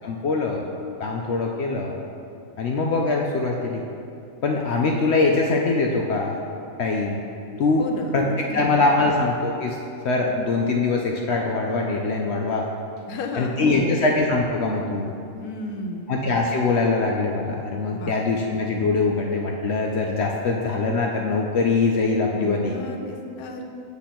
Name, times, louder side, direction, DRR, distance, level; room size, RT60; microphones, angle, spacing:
voice 1, 0.0-0.7 1.0-2.0 2.6-3.8 4.4-6.4 6.8-7.2 7.6-7.8 8.1-9.8 10.0-12.7 13.4-15.1 16.1-22.8, left 3 dB, 65° left, 0 dB, 0.7 m, -23 dB
voice 2, 7.8-9.1 13.1-14.1 15.3-16.2 17.9-18.4 22.3-23.6, left 2 dB, 85° left, 2 dB, 1.2 m, -33 dB
8.3 x 3.0 x 5.8 m, 2.6 s
omnidirectional pair, 1.5 m